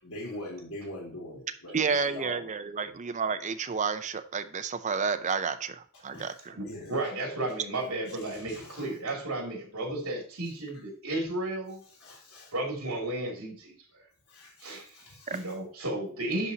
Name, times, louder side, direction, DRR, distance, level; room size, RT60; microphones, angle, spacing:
voice 1, 0.0-2.5 2.8-3.0 6.1-6.3 6.6-7.0 8.3-8.9 12.0-12.5 14.3-15.4, left 1 dB, 80° left, -3 dB, 3.4 m, -43 dB
voice 2, 1.7-6.5 15.3-15.4, right 5 dB, 35° right, 9 dB, 0.5 m, -30 dB
voice 3, 6.5-11.8 12.5-14.0 14.6-16.5, right 2 dB, 70° right, 0 dB, 2.7 m, -34 dB
11.0 x 4.1 x 2.8 m, 0.43 s
head